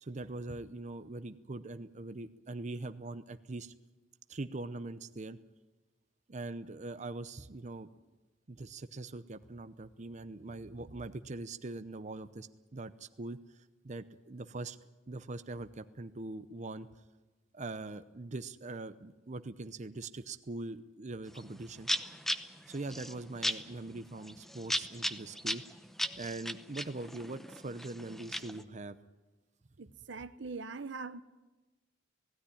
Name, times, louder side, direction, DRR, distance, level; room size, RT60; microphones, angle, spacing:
voice 1, 0.0-3.7 4.3-5.4 6.3-7.9 8.5-14.8 15.1-16.9 17.5-21.9 22.7-25.6 26.2-29.0, right 2 dB, 40° right, 0.7 m, -42 dB
sound 1, 21.3-21.5 21.8-28.6, equal, ahead, 0.8 m, -37 dB
voice 2, 29.8-31.2, right 4 dB, 75° right, 0.7 m, -42 dB
17.5 x 16.5 x 9.9 m
head